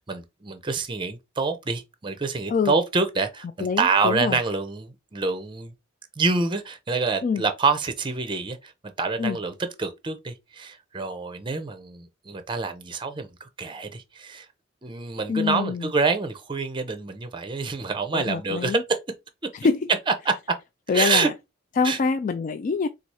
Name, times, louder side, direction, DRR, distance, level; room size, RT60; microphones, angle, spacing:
voice 1, 0.0-5.7 6.2-8.7 9.0-13.3 13.6-14.5 14.8-18.8 20.2-20.3 20.9-21.3 21.8-22.0, right 4 dB, 25° right, 0.6 m, -26 dB
voice 2, 3.6-4.4 7.2-7.4 9.2-9.4 15.3-15.9 18.1-18.8 19.5-19.9 20.9-21.3 21.8-22.9, left 5 dB, 40° left, 0.3 m, -25 dB
4.1 x 2.4 x 4.7 m
head